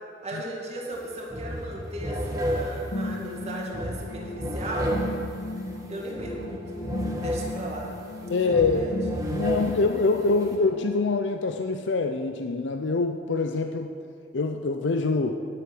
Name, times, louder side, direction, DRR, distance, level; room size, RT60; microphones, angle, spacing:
voice 1, 0.2-5.0 5.9-6.8 7.2-7.9 8.3-8.9, right 1 dB, 35° right, -3 dB, 2.0 m, -36 dB
sound 1, 0.9-1.0 1.3-10.5, equal, 20° right, 1.4 m, -33 dB
sound 2, 2.9-10.9, left 2 dB, 90° left, 1.7 m, -35 dB
voice 2, 8.3-8.9 9.3-13.9 14.3-15.3, left 3 dB, 65° left, 6 dB, 0.5 m, -25 dB
9.8 x 8.2 x 7.7 m, 2.3 s
head